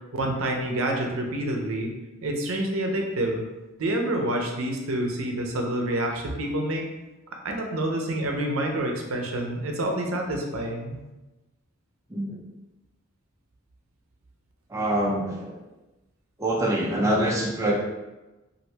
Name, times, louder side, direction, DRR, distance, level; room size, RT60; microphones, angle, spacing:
voice 1, 0.1-1.9 2.2-3.4 3.8-6.9 7.4-10.9, right 1 dB, 80° right, 2 dB, 0.6 m, -27 dB
voice 2, 14.7-15.5 16.4-17.9, right 1 dB, 15° right, -3 dB, 0.4 m, -25 dB
2.8 x 2.5 x 3.2 m, 1.1 s
head